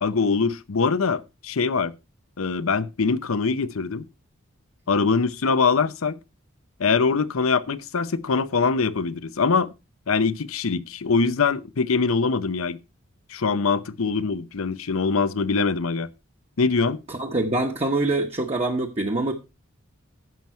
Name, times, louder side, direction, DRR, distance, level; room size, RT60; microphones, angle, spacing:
voice 1, 0.0-1.9 2.4-4.0 4.9-6.2 6.8-9.7 10.1-12.8 13.3-16.1 16.6-17.0, left 4 dB, 85° left, 0.7 m, -23 dB
voice 2, 17.1-19.3, right 2 dB, 30° right, 1.1 m, -24 dB
11.0 x 7.6 x 4.4 m
head